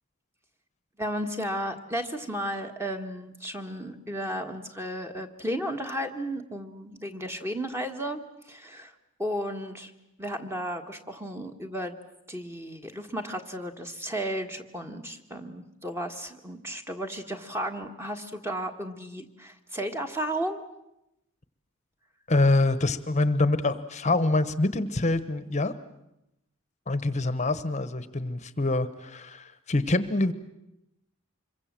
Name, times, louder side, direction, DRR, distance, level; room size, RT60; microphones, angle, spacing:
voice 1, 1.0-8.2 8.4-8.9 9.2-9.9 10.2-12.0 12.3-20.6, equal, 10° right, 5 dB, 1.6 m, -34 dB
voice 2, 22.3-25.7 26.9-30.3, left 2 dB, 35° left, 13 dB, 1.1 m, -25 dB
26.5 x 23.0 x 7.6 m, 0.88 s
head